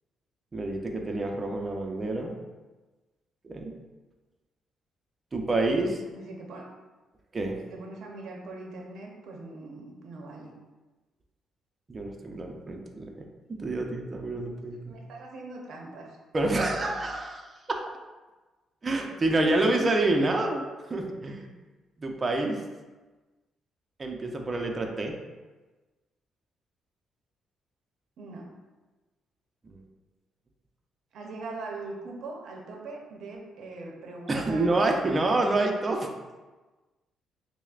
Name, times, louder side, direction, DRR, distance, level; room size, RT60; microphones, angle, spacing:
voice 1, 0.5-2.4 3.4-3.7 5.3-6.0 7.3-7.6 11.9-15.0 16.3-17.8 18.8-20.6 20.9-21.5 22.0-22.6 24.0-25.2 29.6-29.8 34.3-36.1, right 2 dB, 30° right, 2 dB, 0.5 m, -28 dB
voice 2, 6.1-6.7 7.6-10.5 14.9-16.1 16.4-16.7 19.0-19.1 28.2-28.5 31.1-35.4, right 3 dB, 70° right, 0 dB, 0.7 m, -41 dB
6.0 x 2.1 x 2.4 m, 1.2 s
cardioid pair, 90°, 0 cm